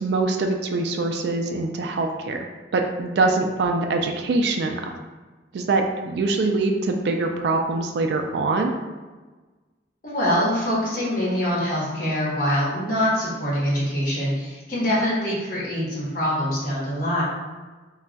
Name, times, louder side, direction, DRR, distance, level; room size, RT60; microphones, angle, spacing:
voice 1, 0.0-2.4 2.7-4.8 5.5-8.8, right 3 dB, 65° right, 3 dB, 0.3 m, -23 dB
voice 2, 10.0-17.2, equal, 50° left, -7 dB, 1.0 m, -24 dB
2.3 x 2.2 x 3.9 m, 1.3 s
head